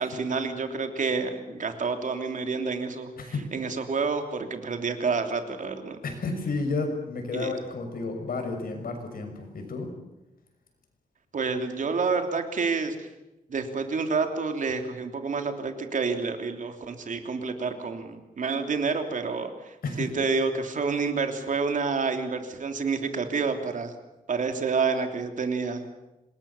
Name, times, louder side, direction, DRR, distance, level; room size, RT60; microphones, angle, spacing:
voice 1, 0.0-6.0 7.3-7.5 11.3-13.1 13.5-23.9 24.3-25.8, right 4 dB, 60° right, 6 dB, 3.2 m, -29 dB
voice 2, 6.0-9.9 19.8-20.1, left 3 dB, 90° left, 5 dB, 6.2 m, -31 dB
27.0 x 21.0 x 7.2 m, 0.99 s
wide cardioid pair, 145°, 15 cm